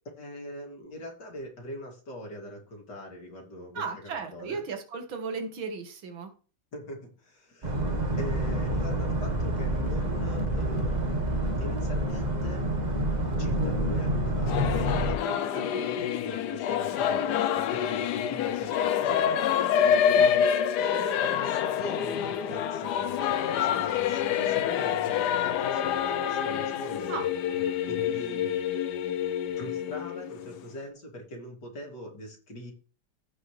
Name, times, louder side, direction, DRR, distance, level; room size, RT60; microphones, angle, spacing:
voice 1, 0.1-4.6 6.7-7.8 8.2-12.6 13.4-19.2 20.9-28.6 29.0-29.1 29.6-32.7, equal, 55° left, 0 dB, 3.3 m, -42 dB
voice 2, 3.7-6.3 15.7-15.8 20.1-20.6 27.1-27.3, right 5 dB, 75° right, 5 dB, 2.3 m, -36 dB
Boat Water vehicle, 7.6-15.2, right 1 dB, 25° right, 1.0 m, -28 dB
Singing / Musical instrument, 14.5-30.8, left 9 dB, 70° left, 1.0 m, -27 dB
16.0 x 5.5 x 3.2 m, 0.37 s
omnidirectional pair, 2.2 m